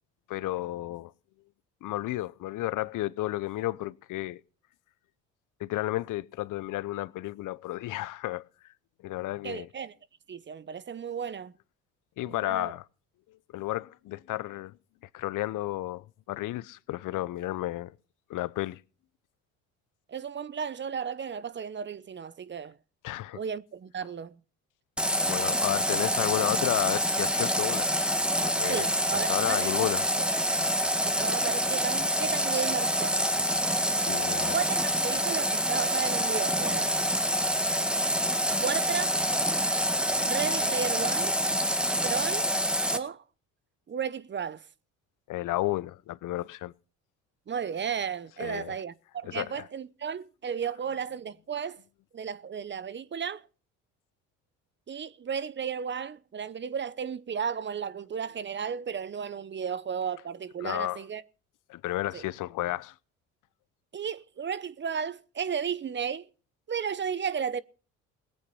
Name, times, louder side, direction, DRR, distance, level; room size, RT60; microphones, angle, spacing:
voice 1, 0.3-1.1 1.8-4.4 5.6-8.4 9.0-9.7 12.2-12.8 13.5-14.7 15.1-17.9 18.3-18.8 23.0-23.4 25.2-28.0 28.4-28.9 29.3-30.0 34.1-34.5 45.3-46.7 48.4-48.8 49.3-49.7 60.6-61.0 61.7-62.9, left 16 dB, 60° left, 0.7 m, -32 dB
voice 2, 9.4-9.9 10.3-11.5 12.3-12.7 20.1-22.8 23.3-24.4 28.7-29.9 30.2-30.3 31.2-33.3 34.5-36.9 38.6-39.2 40.2-41.4 42.0-42.5 42.9-43.2 43.9-44.6 47.5-51.8 52.1-53.5 54.9-61.2 62.1-62.3 63.9-66.3 66.7-67.6, right 7 dB, 30° right, 0.8 m, -34 dB
Water tap faucet, 25.0-43.0, equal, 5° right, 1.6 m, -27 dB
18.0 x 8.7 x 5.5 m
supercardioid pair, 70°, 36 cm